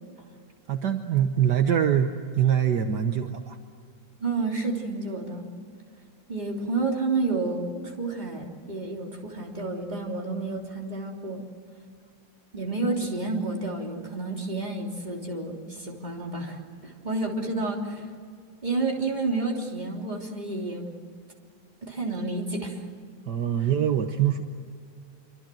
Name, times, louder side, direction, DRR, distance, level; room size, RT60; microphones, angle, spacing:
voice 1, 0.7-2.1 2.4-3.6 23.3-24.4, right 9 dB, 65° right, 6 dB, 1.6 m, -23 dB
voice 2, 4.2-5.5 6.3-11.4 12.5-18.0 18.6-20.9 21.8-22.8 23.6-23.7, right 3 dB, 25° right, 0 dB, 3.4 m, -30 dB
26.5 x 25.0 x 7.7 m, 2.2 s
omnidirectional pair, 2.0 m